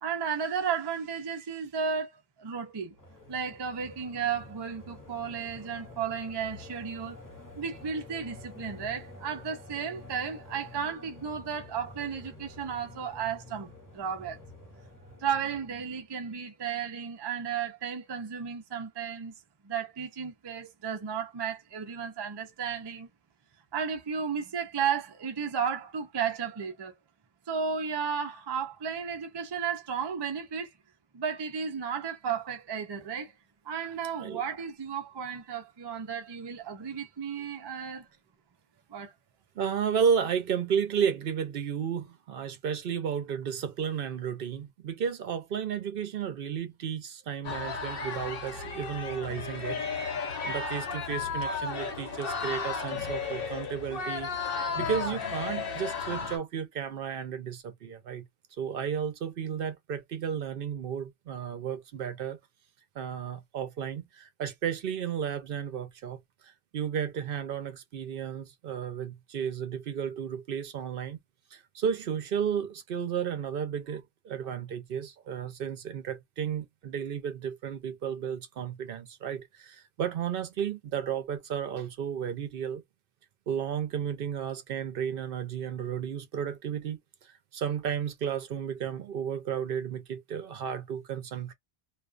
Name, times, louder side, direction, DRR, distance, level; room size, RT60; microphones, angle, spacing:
voice 1, 0.0-2.1 2.4-2.9 3.3-7.2 7.6-14.4 15.2-19.3 19.6-23.1 23.7-27.0 27.5-30.7 31.1-33.3 33.6-38.1 38.9-39.1, right 7 dB, 35° right, 0.4 m, -33 dB
sound 1, 2.9-16.0, left 2 dB, 20° left, 0.8 m, -49 dB
voice 2, 39.6-49.8 50.4-58.2 58.6-62.4 63.0-66.2 66.4-71.2 71.5-82.8 83.5-91.5, right 8 dB, 65° right, 0.7 m, -33 dB
sound 2, 47.4-56.4, left 5 dB, 65° left, 1.0 m, -34 dB
2.4 x 2.3 x 2.4 m
omnidirectional pair, 1.1 m